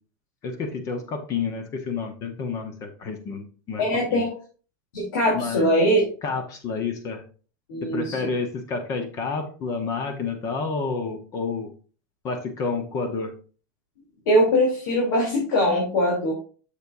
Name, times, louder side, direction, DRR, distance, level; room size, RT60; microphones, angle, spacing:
voice 1, 0.4-3.8 4.1-4.2 5.3-5.7 6.2-7.2 7.8-11.7 12.2-13.3, left 4 dB, 30° left, 7 dB, 1.0 m, -29 dB
voice 2, 3.8-4.3 4.9-6.1 7.7-8.2 14.3-16.3, equal, 80° left, -4 dB, 3.4 m, -21 dB
7.5 x 6.9 x 2.6 m, 0.38 s
supercardioid pair, 155°, 10 cm